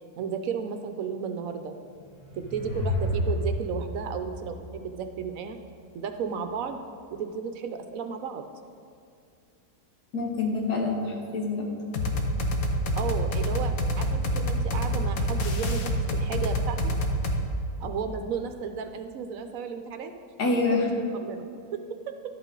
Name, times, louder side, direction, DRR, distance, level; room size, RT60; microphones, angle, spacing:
voice 1, 0.2-1.7 2.3-5.6 5.9-6.8 7.1-8.4 13.0-16.8 17.8-20.1 20.7-21.4, right 6 dB, 70° right, 7 dB, 0.9 m, -34 dB
sound 1, 1.9-5.3, left 1 dB, 40° left, 1.6 m, -31 dB
voice 2, 10.1-11.7 20.4-20.9, left 3 dB, 85° left, 0 dB, 1.9 m, -26 dB
sound 2, 11.9-17.4, equal, 65° left, 1.3 m, -27 dB
11.5 x 8.1 x 3.8 m, 2.4 s
omnidirectional pair, 1.7 m